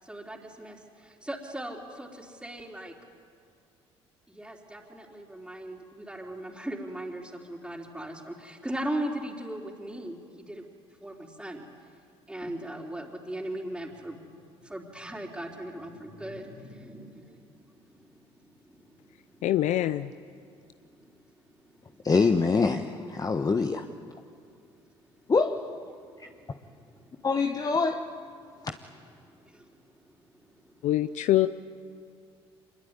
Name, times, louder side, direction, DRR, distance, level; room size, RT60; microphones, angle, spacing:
voice 1, 0.0-3.0 4.3-10.7 11.0-11.7 12.3-19.4 20.4-21.2 21.6-22.0 26.4-27.3 28.4-28.5 29.3-30.8, right 1 dB, 5° right, -3 dB, 3.9 m, -39 dB
voice 2, 19.4-20.1 30.8-31.5, left 14 dB, 60° left, 12 dB, 0.6 m, -24 dB
voice 3, 22.0-23.9 25.3-25.8 27.2-28.1 28.6-28.7, left 4 dB, 25° left, 5 dB, 1.3 m, -25 dB
25.5 x 21.5 x 9.7 m, 2.3 s
hypercardioid pair, 60°, 14 cm